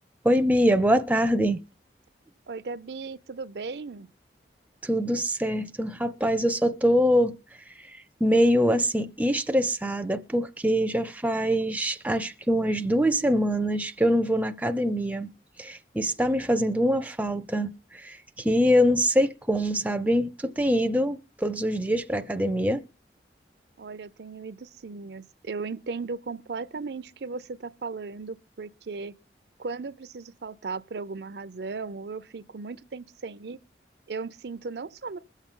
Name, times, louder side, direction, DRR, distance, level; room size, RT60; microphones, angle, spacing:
voice 1, 0.2-1.6 4.8-7.3 7.8-15.3 15.6-22.8, equal, 10° right, 0.5 m, -24 dB
voice 2, 2.5-4.1 23.8-29.1 29.6-33.6 34.1-35.2, right 4 dB, 70° right, 0.5 m, -36 dB
21.5 x 7.3 x 3.7 m
head